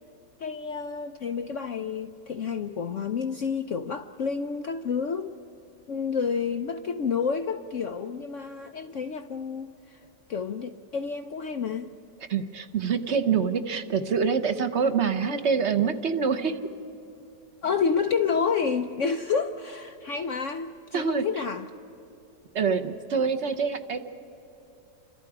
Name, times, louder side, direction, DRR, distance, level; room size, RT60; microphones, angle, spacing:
voice 1, 0.4-5.4 5.9-10.0 10.3-11.9 17.6-21.7, left 6 dB, 65° left, 7 dB, 0.7 m, -29 dB
voice 2, 12.3-16.6 20.9-21.2 22.5-24.0, right 6 dB, 45° right, 8 dB, 1.1 m, -25 dB
29.5 x 26.0 x 4.9 m, 2.8 s
omnidirectional pair, 2.0 m